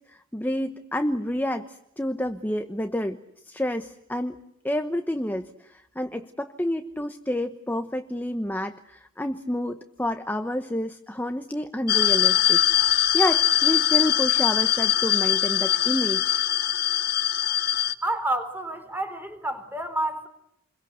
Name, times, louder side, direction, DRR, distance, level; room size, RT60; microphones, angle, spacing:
voice 1, 0.1-3.2 3.5-4.3 4.6-12.6 13.1-16.5, left 1 dB, 10° left, 7 dB, 1.0 m, -29 dB
sound 1, 11.9-17.9, left 11 dB, 55° left, 1.5 m, -22 dB
voice 2, 18.0-20.3, right 1 dB, 10° right, 8 dB, 3.8 m, -29 dB
28.5 x 22.5 x 8.1 m, 0.80 s
head